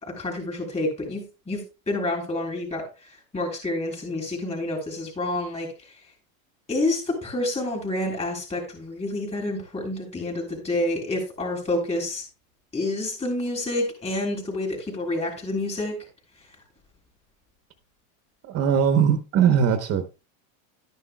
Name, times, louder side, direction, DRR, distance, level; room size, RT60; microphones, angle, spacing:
voice 1, 0.0-5.7 6.7-12.2 12.7-15.9, left 2 dB, 15° left, 1 dB, 3.7 m, -28 dB
voice 2, 18.5-20.0, right 8 dB, 35° right, 8 dB, 1.0 m, -20 dB
12.0 x 10.0 x 2.3 m, 0.31 s
supercardioid pair, 150°, 41 cm